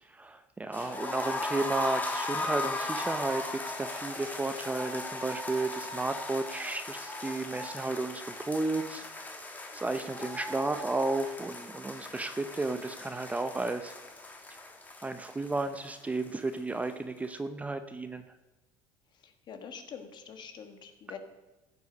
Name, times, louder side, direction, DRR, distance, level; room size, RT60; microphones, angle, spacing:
voice 1, 0.0-9.3 9.7-13.9 14.5-14.6 15.0-18.2, right 2 dB, 15° right, 9 dB, 0.6 m, -33 dB
sound 1, 0.7-16.6 16.8-16.9 17.2-17.3, left 2 dB, 15° left, 1.5 m, -38 dB
voice 2, 19.2-21.2, left 7 dB, 50° left, 7 dB, 1.6 m, -45 dB
14.5 x 8.2 x 5.3 m, 1.1 s
cardioid pair, 115°, 10 cm